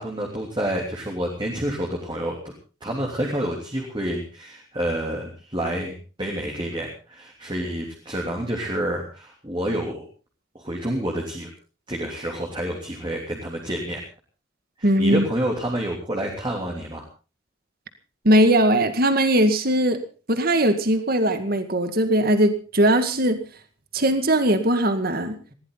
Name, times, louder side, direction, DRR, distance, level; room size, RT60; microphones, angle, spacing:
voice 1, 0.0-2.5 2.8-10.0 10.5-11.5 11.9-14.0 14.8-17.0, right 1 dB, 25° right, -1 dB, 3.3 m, -28 dB
voice 2, 14.8-15.2 18.2-20.0 20.3-23.4 23.9-25.4, right 1 dB, 50° right, 9 dB, 2.0 m, -19 dB
20.5 x 16.0 x 4.0 m, 0.36 s
head